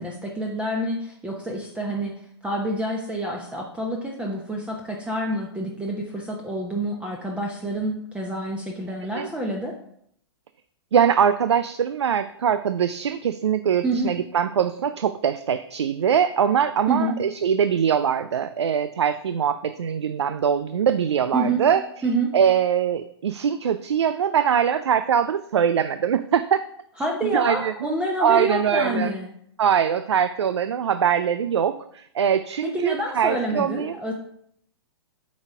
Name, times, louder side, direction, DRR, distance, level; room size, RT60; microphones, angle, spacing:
voice 1, 0.0-2.1 2.4-9.7 13.8-14.1 16.9-17.2 21.3-21.6 22.0-22.3 27.0-29.3 32.6-34.1, right 1 dB, 10° right, 0 dB, 1.0 m, -27 dB
voice 2, 10.9-21.8 22.3-26.6 27.2-27.7 28.2-29.1 29.6-33.9, right 8 dB, 75° right, 12 dB, 0.4 m, -22 dB
8.6 x 4.1 x 4.9 m, 0.70 s
figure-of-eight pair, 110°, 14 cm